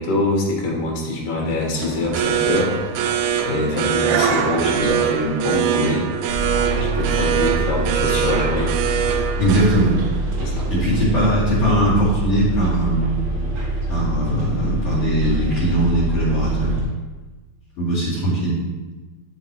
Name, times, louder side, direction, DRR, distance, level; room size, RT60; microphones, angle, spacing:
voice 1, 0.0-2.8 3.4-6.1 6.7-8.7 10.4-10.7, left 2 dB, 75° left, -1 dB, 2.9 m, -24 dB
sound 1, 1.4-11.0, right 8 dB, 85° right, 1.6 m, -23 dB
Bus, 6.3-16.8, right 2 dB, 65° right, 2.1 m, -24 dB
voice 2, 9.4-10.0 10.7-13.1 13.9-16.8 17.8-18.6, right 1 dB, 50° left, -10 dB, 3.3 m, -20 dB
11.0 x 4.1 x 3.0 m, 1.2 s
omnidirectional pair, 3.8 m